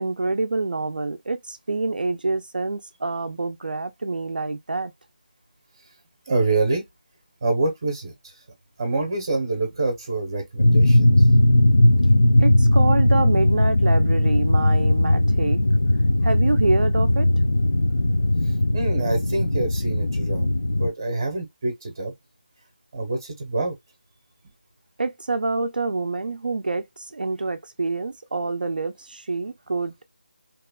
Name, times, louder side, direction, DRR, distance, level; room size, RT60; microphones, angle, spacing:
voice 1, 0.0-4.9 12.4-15.6 16.2-17.3 25.0-30.0, right 3 dB, 65° right, 0.4 m, -26 dB
voice 2, 6.3-6.8 7.4-8.1 8.8-11.1 18.7-20.5 20.8-22.1 22.9-23.7, right 3 dB, 20° right, 0.7 m, -26 dB
sound 1, 10.6-20.9, left 1 dB, 55° left, 0.5 m, -18 dB
2.9 x 2.1 x 2.2 m
figure-of-eight pair, 180°, 5 cm